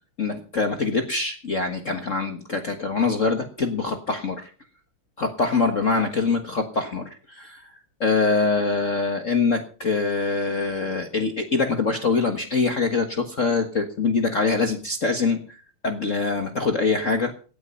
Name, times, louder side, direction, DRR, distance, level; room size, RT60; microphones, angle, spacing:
voice 1, 0.2-4.5 5.2-7.7 8.0-15.6 15.8-17.3, left 4 dB, 40° left, 5 dB, 1.6 m, -24 dB
17.5 x 9.5 x 5.6 m, 0.39 s
omnidirectional pair, 2.4 m